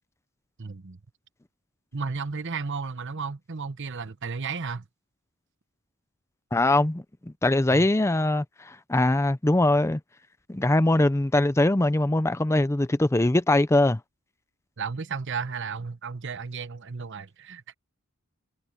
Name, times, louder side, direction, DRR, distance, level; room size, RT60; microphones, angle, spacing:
voice 1, 0.6-1.0 1.9-4.8 7.7-7.9 14.8-17.7, right 5 dB, 55° right, 1.0 m, -33 dB
voice 2, 6.5-10.0 10.5-14.0, left 1 dB, 10° left, 0.5 m, -22 dB
head